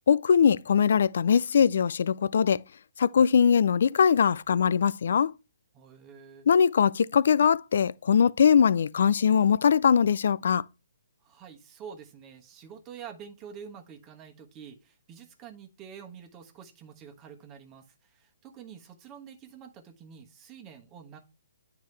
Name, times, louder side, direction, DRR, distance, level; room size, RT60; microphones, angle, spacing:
voice 1, 0.1-2.6 3.0-5.3 6.5-10.6, left 7 dB, 60° left, 0.3 m, -21 dB
voice 2, 5.7-6.5 11.2-21.2, right 7 dB, 25° right, 1.2 m, -47 dB
9.2 x 4.7 x 3.2 m
figure-of-eight pair, 135°, 0 cm